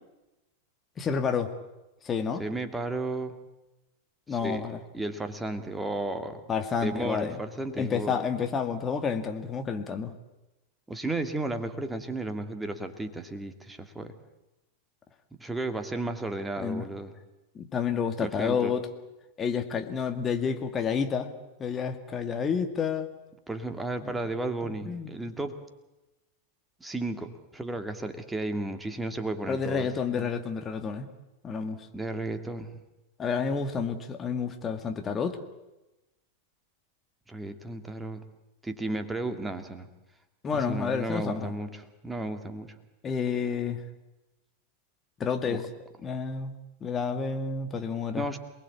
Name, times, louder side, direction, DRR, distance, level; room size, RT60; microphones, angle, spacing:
voice 1, 1.0-1.5 2.0-2.4 4.3-4.8 6.5-7.4 7.8-10.1 16.6-16.9 17.6-18.9 19.4-21.3 21.6-23.1 24.0-24.2 24.6-25.1 29.5-31.1 31.4-31.9 33.2-35.4 40.4-41.5 43.0-43.8 45.2-45.6 46.0-46.5 46.8-48.2, left 6 dB, 20° left, 6 dB, 2.1 m, -29 dB
voice 2, 2.4-3.3 4.3-4.6 4.9-6.4 6.8-8.2 10.9-14.1 15.4-17.1 18.2-18.7 23.5-25.6 26.8-29.9 30.1-30.3 31.9-32.7 37.3-38.2 38.6-39.9 40.5-42.7 45.5-45.6 48.2-48.4, right 2 dB, 10° right, 7 dB, 2.4 m, -34 dB
28.0 x 20.5 x 8.5 m, 0.98 s
figure-of-eight pair, 90°, 0 cm